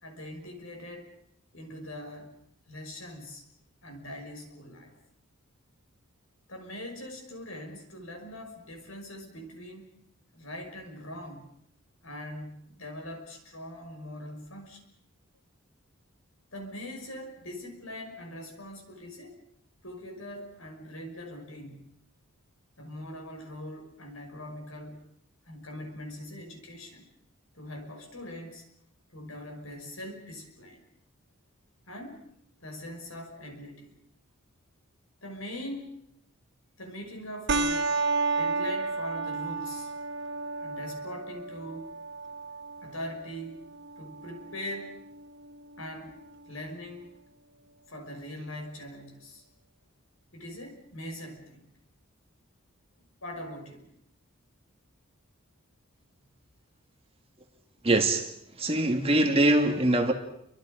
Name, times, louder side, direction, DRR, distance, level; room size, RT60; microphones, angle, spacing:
voice 1, 0.0-1.1 1.5-2.3 2.7-3.5 3.8-5.0 6.5-10.0 10.3-11.5 12.0-14.8 16.5-19.4 19.8-21.9 22.8-25.1 25.5-27.1 27.5-28.7 29.1-30.8 31.9-32.2 32.6-34.0 35.2-36.0 36.8-37.9 38.4-39.9 40.6-41.9 42.8-43.6 44.0-45.0 45.8-46.2 46.5-47.1 47.9-49.4 50.3-51.7 53.2-53.9, left 1 dB, 70° left, 5.7 m, -42 dB
sound 1, 37.5-46.5, right 4 dB, 55° right, 1.3 m, -33 dB
voice 2, 57.8-58.3 58.6-60.1, right 1 dB, 25° right, 2.2 m, -23 dB
30.0 x 24.5 x 5.2 m
head